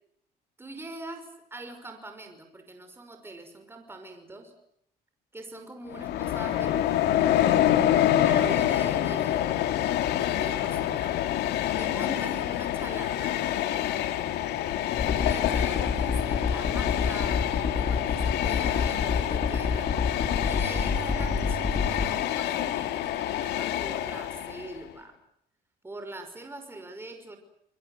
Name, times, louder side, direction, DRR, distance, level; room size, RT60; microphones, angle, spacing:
voice 1, 0.6-4.5 5.3-7.1 8.2-9.7 10.2-11.2 11.8-13.4 15.2-19.9 20.4-25.2 25.8-27.4, right 2 dB, 15° right, 6 dB, 5.7 m, -43 dB
Train, 5.9-24.8, left 12 dB, 80° left, 2.2 m, -27 dB
sound 1, 15.0-22.1, left 5 dB, 35° left, 4.0 m, -28 dB
29.5 x 22.5 x 8.0 m, 0.73 s
cardioid pair, 110°, 17 cm